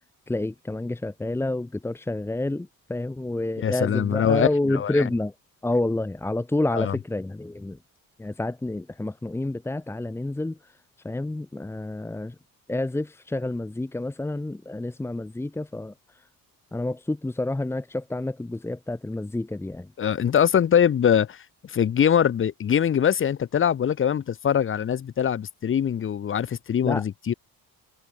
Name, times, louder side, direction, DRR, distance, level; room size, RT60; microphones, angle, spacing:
voice 1, 0.3-5.3 5.6-7.8 8.2-10.6 11.0-12.3 12.7-15.9 16.7-19.9 26.8-27.0 27.3-27.4, left 2 dB, 5° left, 1.9 m, -29 dB
voice 2, 3.6-5.1 6.7-7.0 20.0-27.3, left 8 dB, 35° left, 3.6 m, -23 dB
cardioid pair, 180°, 35 cm